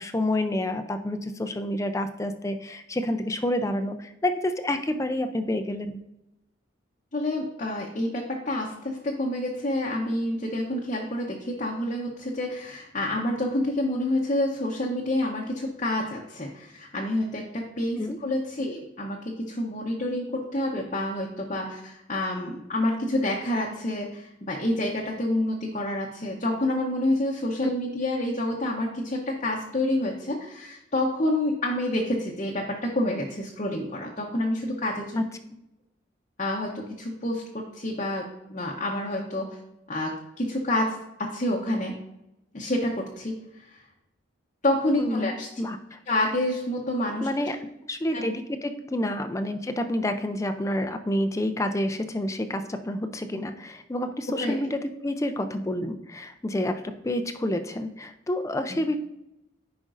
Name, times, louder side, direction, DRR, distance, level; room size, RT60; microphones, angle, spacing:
voice 1, 0.0-6.0 17.9-18.2 27.6-27.7 35.2-35.3 45.0-46.0 47.2-47.6 47.9-59.0, left 1 dB, 15° left, 8 dB, 0.4 m, -29 dB
voice 2, 7.1-35.2 36.4-39.5 39.9-42.0 42.5-43.4 44.6-45.5 46.1-47.3 48.1-48.2 54.4-54.5, left 1 dB, 35° left, -2 dB, 0.8 m, -28 dB
10.0 x 5.1 x 2.5 m, 0.88 s
head